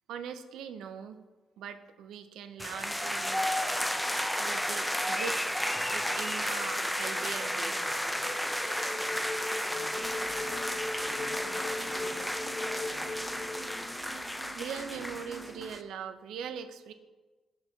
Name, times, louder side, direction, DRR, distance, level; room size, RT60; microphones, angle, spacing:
voice 1, 0.1-1.2 1.6-3.5 4.4-5.5 5.9-7.8 14.5-16.9, right 7 dB, 85° right, 10 dB, 0.4 m, -41 dB
sound 1, 2.6-15.8, equal, 5° left, 0.4 m, -33 dB
sound 2, 4.3-14.0, left 2 dB, 35° left, 0.8 m, -41 dB
voice 2, 9.7-10.7 11.1-13.3, left 5 dB, 75° left, 7 dB, 0.6 m, -51 dB
sound 3, 9.9-15.7, right 2 dB, 40° right, 1.4 m, -48 dB
13.0 x 4.4 x 2.7 m, 1.3 s
cardioid pair, 90°, 0 cm